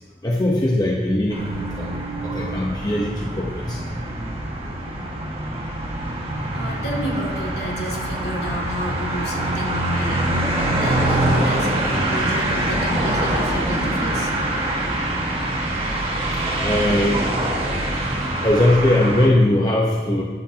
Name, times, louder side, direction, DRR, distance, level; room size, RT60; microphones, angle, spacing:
voice 1, 0.2-1.9 2.2-4.0 10.5-10.8 12.4-12.8 14.7-15.5 16.4-17.2 18.4-20.2, left 1 dB, 25° left, -3 dB, 1.1 m, -21 dB
sound 1, 1.3-19.3, right 1 dB, 30° right, 1.9 m, -24 dB
voice 2, 6.5-14.3, left 1 dB, 65° left, -2 dB, 2.5 m, -31 dB
13.0 x 12.0 x 3.0 m, 1.4 s
head